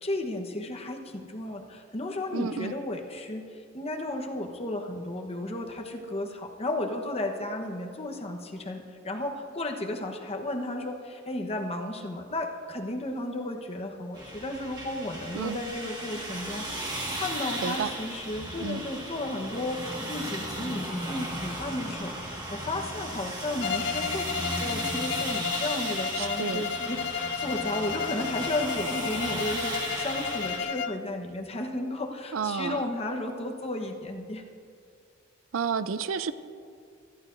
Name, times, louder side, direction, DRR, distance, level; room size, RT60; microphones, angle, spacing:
voice 1, 0.0-3.5 3.7-34.4, left 1 dB, 30° left, 3 dB, 1.1 m, -34 dB
voice 2, 2.3-2.7 15.3-15.6 17.6-17.9 18.6-18.8 26.2-26.6 32.3-32.8 35.5-36.3, right 6 dB, 80° right, 13 dB, 0.5 m, -31 dB
sound 1, 14.1-30.6, right 1 dB, 20° right, 1.7 m, -36 dB
Bowed string instrument, 23.6-31.1, left 7 dB, 60° left, 0.4 m, -32 dB
21.5 x 14.5 x 2.6 m, 2.3 s
head